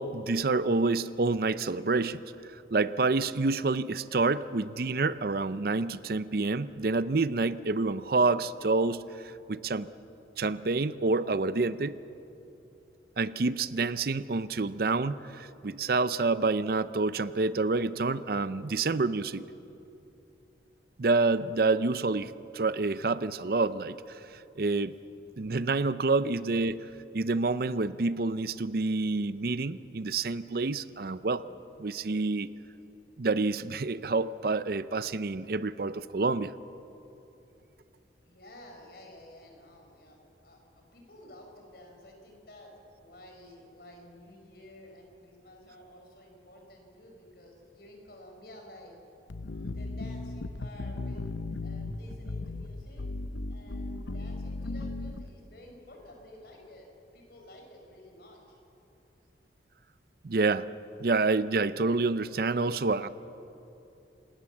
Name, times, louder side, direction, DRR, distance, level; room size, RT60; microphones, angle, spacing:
voice 1, 0.0-2.2 2.5-9.0 9.5-9.9 10.4-12.0 13.2-19.4 21.0-24.2 24.6-24.9 25.4-26.9 27.1-31.4 31.8-32.5 33.2-36.5 60.2-60.7 61.0-63.1, right 3 dB, 55° right, 15 dB, 0.6 m, -28 dB
voice 2, 38.2-48.9 49.7-53.1 53.5-58.6, left 1 dB, 55° left, 2 dB, 5.1 m, -52 dB
sound 1, 49.3-55.3, left 2 dB, 90° left, 0.7 m, -36 dB
27.5 x 18.0 x 7.3 m, 2.9 s
head